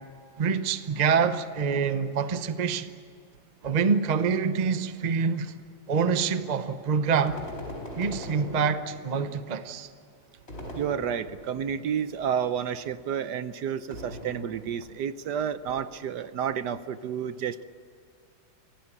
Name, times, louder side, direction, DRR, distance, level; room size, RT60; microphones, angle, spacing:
voice 1, 0.4-2.9 3.6-5.5 5.9-7.4 8.0-9.9, right 6 dB, 35° right, 0.6 m, -26 dB
sound 1, 7.3-9.2 10.5-11.7 13.9-14.9, left 1 dB, 30° left, 4.5 m, -40 dB
voice 2, 10.7-17.6, right 8 dB, 70° right, 1.2 m, -30 dB
25.0 x 17.5 x 8.5 m
omnidirectional pair, 2.1 m